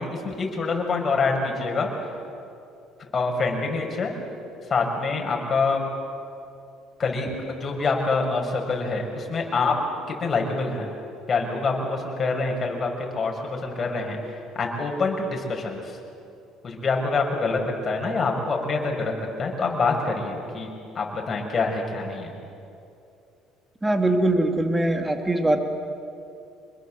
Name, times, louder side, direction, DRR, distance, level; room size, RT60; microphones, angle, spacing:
voice 1, 0.0-1.9 3.1-4.1 4.7-5.8 7.0-9.7 10.1-10.9 11.3-16.0 16.6-19.1 19.4-20.7 20.9-22.3, left 4 dB, 35° left, 1 dB, 6.6 m, -26 dB
voice 2, 23.8-25.6, right 1 dB, 15° right, 5 dB, 2.8 m, -22 dB
27.0 x 21.0 x 7.9 m, 2.6 s
supercardioid pair, 75°, 0 cm